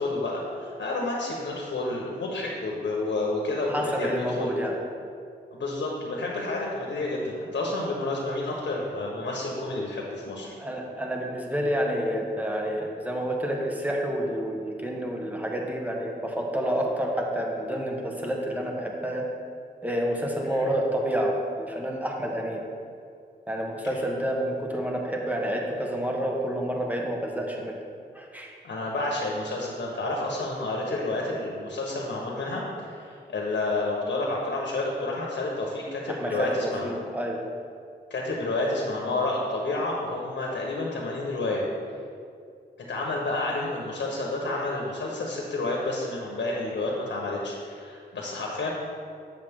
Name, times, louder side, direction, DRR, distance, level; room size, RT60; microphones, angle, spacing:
voice 1, 0.0-4.5 5.5-10.5 20.4-20.7 28.6-36.9 38.1-41.7 42.9-48.7, left 2 dB, 80° left, -2 dB, 1.3 m, -30 dB
voice 2, 3.7-4.8 10.6-19.2 19.8-22.6 23.5-27.8 28.1-28.6 36.1-37.4, equal, 10° right, 0 dB, 1.3 m, -29 dB
7.4 x 7.2 x 3.7 m, 2.3 s
cardioid pair, 60°, 18 cm